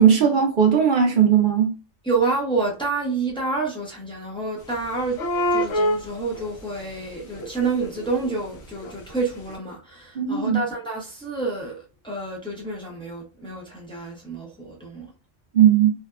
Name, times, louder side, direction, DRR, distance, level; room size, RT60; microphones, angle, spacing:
voice 1, 0.0-1.7 10.2-10.6 15.5-15.9, right 8 dB, 60° right, 0.5 m, -17 dB
voice 2, 2.0-5.2 5.5-15.1, right 3 dB, 5° left, 0.5 m, -28 dB
sound 1, 4.7-4.8 5.0-6.9 7.2-9.1 9.5-9.6, equal, 60° left, 0.8 m, -26 dB
2.7 x 2.2 x 2.3 m
omnidirectional pair, 1.3 m